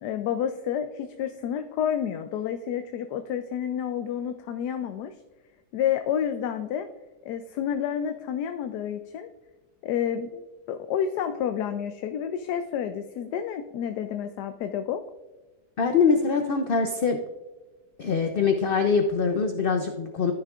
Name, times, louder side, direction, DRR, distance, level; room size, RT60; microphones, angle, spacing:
voice 1, 0.0-5.1 5.7-6.9 7.2-9.3 9.8-15.0, left 9 dB, 85° left, 8 dB, 1.2 m, -29 dB
voice 2, 15.8-17.2 18.0-20.3, left 5 dB, 60° left, 6 dB, 0.5 m, -23 dB
14.0 x 6.5 x 2.4 m, 1.2 s
omnidirectional pair, 1.7 m